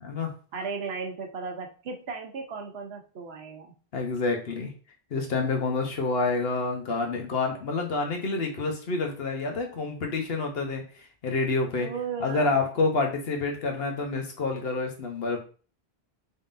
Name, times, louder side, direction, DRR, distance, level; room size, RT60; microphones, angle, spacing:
voice 1, 0.5-3.7 11.8-12.7, right 5 dB, 75° right, 3 dB, 1.1 m, -36 dB
voice 2, 3.9-4.7 5.1-10.8 11.2-11.9 12.2-15.4, left 3 dB, 70° left, 3 dB, 1.2 m, -28 dB
5.3 x 3.7 x 2.6 m, 0.38 s
omnidirectional pair, 1.1 m